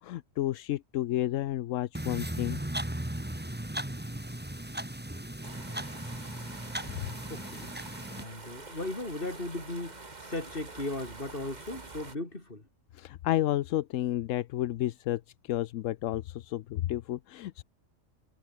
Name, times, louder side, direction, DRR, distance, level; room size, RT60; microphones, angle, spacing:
voice 1, 0.0-2.6 7.0-7.1 12.9-17.6, left 14 dB, 80° left, 1.0 m, -31 dB
sound 1, 1.9-8.2, right 1 dB, 10° right, 1.6 m, -37 dB
sound 2, 5.4-12.2, right 3 dB, 35° right, 2.1 m, -46 dB
voice 2, 7.3-7.7 8.2-12.7, left 2 dB, 45° left, 4.8 m, -37 dB
omnidirectional pair, 1.3 m